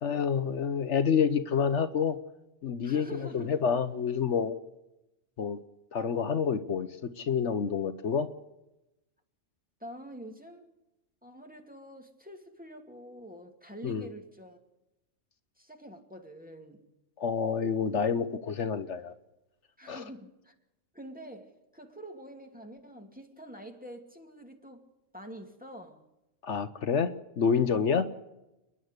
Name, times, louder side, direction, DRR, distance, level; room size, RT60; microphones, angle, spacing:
voice 1, 0.0-2.2 2.6-4.6 5.4-5.6 5.9-8.3 13.8-14.1 17.2-19.1 19.9-20.0 26.4-28.1, left 6 dB, 70° left, 11 dB, 1.2 m, -28 dB
voice 2, 2.8-3.6 9.8-10.7 11.2-14.6 15.6-16.9 19.8-20.5 20.9-24.8 25.1-26.0 27.9-28.1, right 1 dB, 5° right, 3 dB, 2.4 m, -46 dB
30.0 x 11.0 x 8.1 m, 0.95 s
omnidirectional pair, 1.3 m